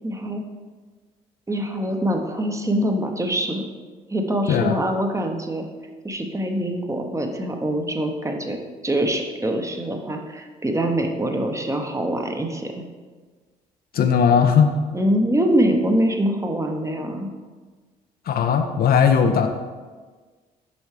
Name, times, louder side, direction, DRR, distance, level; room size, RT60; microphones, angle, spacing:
voice 1, 0.0-0.4 1.5-3.6 4.1-5.6 6.0-8.6 8.8-12.8 14.9-17.3, right 1 dB, 15° right, 4 dB, 0.9 m, -24 dB
voice 2, 13.9-14.7 18.3-19.5, left 7 dB, 50° left, 6 dB, 0.6 m, -18 dB
7.0 x 5.4 x 3.2 m, 1.4 s
hypercardioid pair, 50°, 20 cm